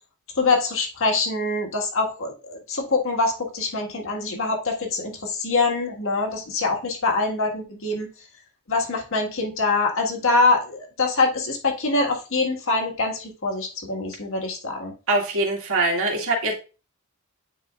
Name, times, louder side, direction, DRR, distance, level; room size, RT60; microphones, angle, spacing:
voice 1, 0.4-8.1 8.7-14.9, left 3 dB, 65° left, 2 dB, 1.8 m, -24 dB
voice 2, 15.1-16.5, right 2 dB, 65° right, 0 dB, 2.0 m, -23 dB
9.4 x 4.7 x 2.5 m, 0.33 s
head